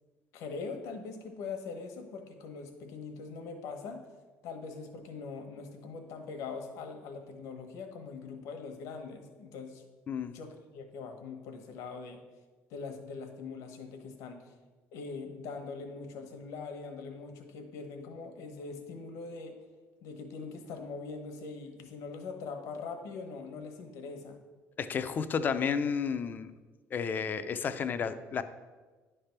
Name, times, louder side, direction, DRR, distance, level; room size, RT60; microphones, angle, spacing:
voice 1, 0.3-4.0 4.4-9.8 10.3-12.2 12.7-14.5 14.9-19.5 20.0-24.4, left 4 dB, 80° left, 5 dB, 1.0 m, -42 dB
voice 2, 24.8-26.5 26.9-28.4, left 6 dB, 40° left, 10 dB, 0.5 m, -31 dB
9.9 x 3.4 x 5.8 m, 1.3 s
cardioid pair, 120°, 5 cm